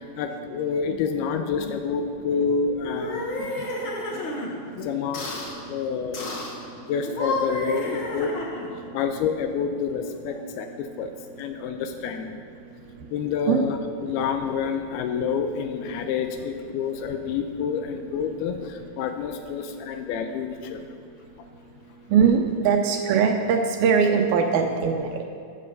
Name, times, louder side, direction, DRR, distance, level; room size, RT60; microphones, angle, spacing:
voice 1, 0.2-3.2 3.8-4.2 4.7-6.3 6.8-8.4 8.9-11.1 11.4-12.4 13.1-21.0, left 6 dB, 80° left, 7 dB, 2.4 m, -28 dB
sound 1, 2.8-4.5 5.1-5.5 6.1-6.6 7.0-8.8, left 2 dB, 55° left, 1.4 m, -31 dB
voice 2, 3.4-4.9 5.5-6.0 6.5-6.9 8.8-9.0 11.4-11.5 13.0-13.1 13.5-13.6 14.1-14.2 22.1-25.2, right 6 dB, 75° right, 4 dB, 2.4 m, -24 dB
14.5 x 7.6 x 6.7 m, 2.2 s
omnidirectional pair, 4.8 m